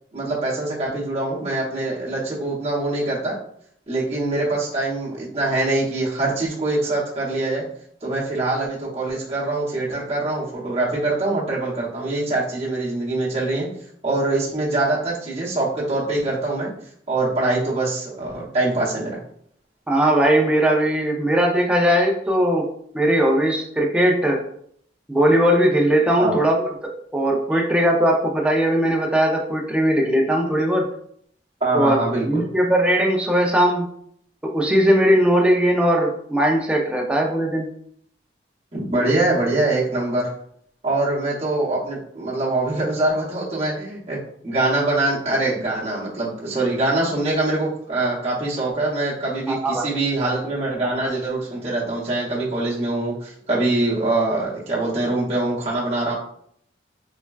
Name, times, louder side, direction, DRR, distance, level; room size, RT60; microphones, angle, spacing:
voice 1, 0.1-3.4 3.9-7.7 8.0-13.7 14.0-16.7 17.1-19.2 26.2-26.4 27.5-27.6 31.6-32.4 38.7-40.3 40.8-56.1, right 2 dB, 35° right, -7 dB, 0.8 m, -23 dB
voice 2, 19.9-24.4 25.1-30.9 31.7-32.0 32.2-33.9 34.4-37.7 49.5-49.9, equal, 5° right, 0 dB, 0.4 m, -19 dB
3.2 x 2.1 x 2.3 m, 0.66 s
head